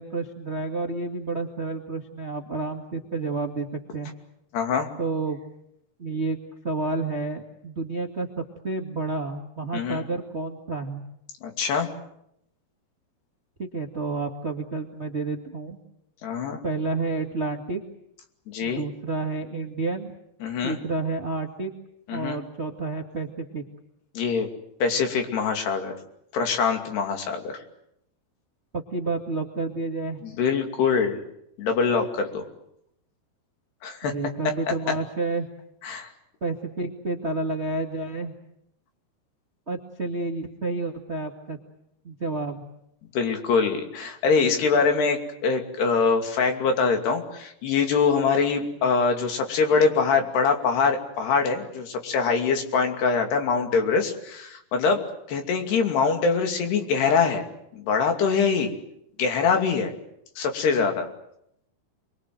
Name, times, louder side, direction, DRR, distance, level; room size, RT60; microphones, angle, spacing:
voice 1, 0.0-3.7 3.9-4.1 5.0-5.4 6.0-6.4 6.6-11.0 13.6-15.8 16.6-17.8 18.6-20.1 20.6-21.7 22.1-23.6 28.7-30.2 34.0-35.5 36.4-38.3 39.7-41.6 42.0-42.6, right 3 dB, 30° right, 3 dB, 1.1 m, -30 dB
voice 2, 4.5-4.9 9.7-10.0 11.4-11.9 16.2-16.6 18.5-18.8 20.4-20.8 22.1-22.4 24.1-24.5 24.8-25.9 26.3-27.5 30.2-31.2 31.6-32.5 33.8-34.1 35.8-36.1 43.1-55.0 55.3-57.4 57.7-58.7 59.2-59.9 60.4-61.1, left 5 dB, 80° left, 4 dB, 4.8 m, -23 dB
28.0 x 23.0 x 7.9 m, 0.77 s
omnidirectional pair, 4.6 m